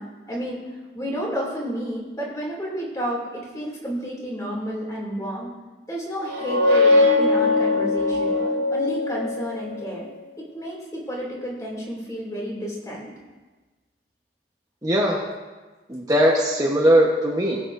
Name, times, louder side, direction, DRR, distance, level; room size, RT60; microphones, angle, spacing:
voice 1, 0.0-5.5 5.9-8.4 8.7-10.1 10.4-13.1, equal, 20° left, -4 dB, 2.6 m, -31 dB
sound 1, 6.2-9.8, left 2 dB, 90° right, 2.0 m, -20 dB
voice 2, 14.8-15.2 15.9-17.6, equal, 20° right, -3 dB, 1.1 m, -19 dB
20.0 x 7.7 x 2.6 m, 1.3 s
head